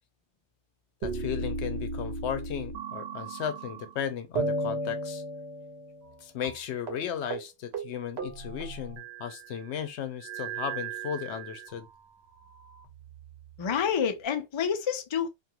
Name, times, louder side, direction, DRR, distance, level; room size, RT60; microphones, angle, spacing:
voice 1, 1.0-5.2 6.2-11.9, left 8 dB, 80° left, 0.9 m, -35 dB
sound 1, 1.0-4.0 4.4-6.2 6.4-6.6 6.9-7.0 7.3-7.5 7.7-9.5 10.2-11.8 12.5-13.4, right 2 dB, 70° right, 1.0 m, -35 dB
voice 2, 13.6-15.3, left 7 dB, 45° left, 0.3 m, -28 dB
2.5 x 2.4 x 2.7 m
omnidirectional pair, 1.1 m